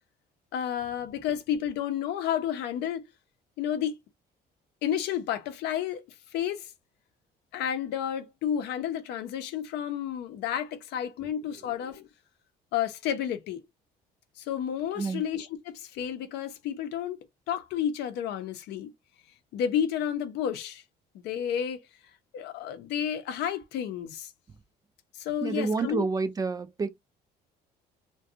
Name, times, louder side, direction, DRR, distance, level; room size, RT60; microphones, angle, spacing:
voice 1, 0.5-3.1 3.6-4.0 4.8-6.0 6.3-6.7 7.5-12.1 12.7-13.6 14.4-18.9 19.5-20.8 21.1-21.8 22.3-24.3 25.1-26.0, left 9 dB, 80° left, 0.6 m, -31 dB
voice 2, 25.4-26.9, right 4 dB, 20° right, 0.3 m, -29 dB
2.4 x 2.2 x 2.7 m
cardioid pair, 110°, 17 cm